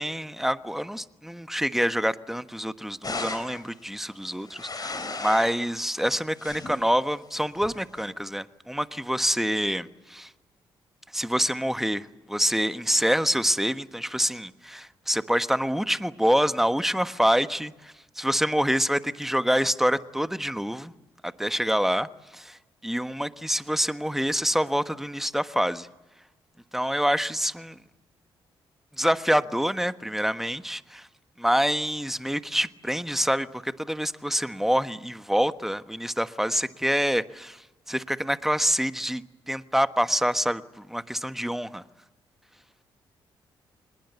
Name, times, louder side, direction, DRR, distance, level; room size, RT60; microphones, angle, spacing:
voice 1, 0.0-10.3 11.1-20.9 21.2-25.9 26.7-27.8 29.0-31.1 31.4-41.8, equal, 5° right, 12 dB, 1.3 m, -26 dB
sound 1, 3.0-3.6 4.3-5.6 6.1-6.9 7.6-8.0, left 3 dB, 35° left, 4.7 m, -35 dB
26.0 x 21.0 x 8.2 m, 1.1 s
hypercardioid pair, 45°, 11 cm